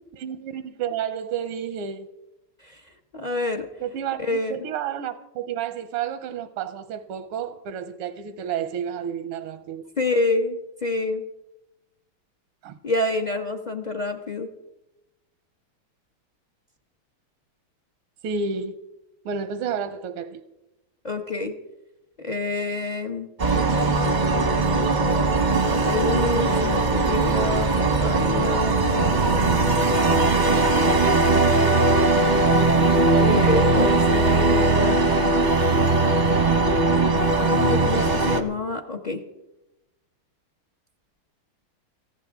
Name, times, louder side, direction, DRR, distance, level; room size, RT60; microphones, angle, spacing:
voice 1, 0.1-2.1 3.8-9.8 12.6-12.8 18.2-18.8 19.2-20.4, right 7 dB, 85° right, 1.6 m, -31 dB
voice 2, 3.1-3.7 4.2-4.7 10.0-11.2 12.8-14.5 21.0-21.5 22.2-23.3 25.6-27.7 28.0-29.7 33.2-35.2 37.4-39.2, left 3 dB, 80° left, 0.4 m, -27 dB
sound 1, 23.4-38.4, right 3 dB, 45° right, 0.5 m, -20 dB
19.5 x 14.5 x 3.5 m
omnidirectional pair, 2.4 m